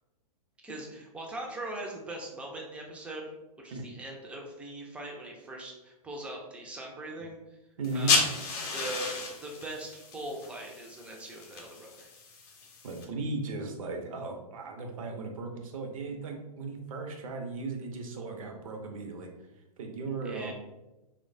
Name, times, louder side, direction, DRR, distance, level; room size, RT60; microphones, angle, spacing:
voice 1, 0.6-3.2 3.6-7.4 7.9-8.3 8.7-12.1 20.2-20.5, right 1 dB, 5° right, 0 dB, 0.3 m, -41 dB
sound 1, 7.8-13.0, left 4 dB, 35° left, 0.6 m, -33 dB
voice 2, 7.8-8.2 12.8-19.3 19.8-20.5, right 3 dB, 60° right, 3 dB, 0.6 m, -36 dB
3.0 x 2.1 x 2.5 m, 1.0 s
figure-of-eight pair, 105°, 20 cm